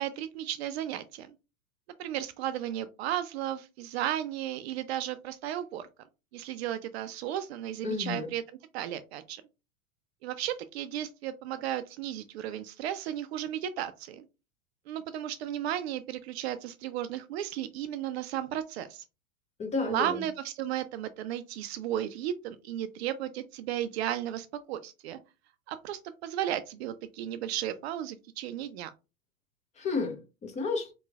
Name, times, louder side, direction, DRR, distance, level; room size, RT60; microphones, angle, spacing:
voice 1, 0.0-1.3 2.0-5.9 6.3-8.4 8.7-9.4 10.2-14.2 14.9-19.0 19.8-25.2 25.7-28.9, right 11 dB, 50° right, 0.4 m, -34 dB
voice 2, 7.8-8.3 19.6-20.2 29.8-30.9, left 4 dB, 15° left, 0.6 m, -32 dB
3.7 x 2.9 x 2.3 m
hypercardioid pair, 105°, 42 cm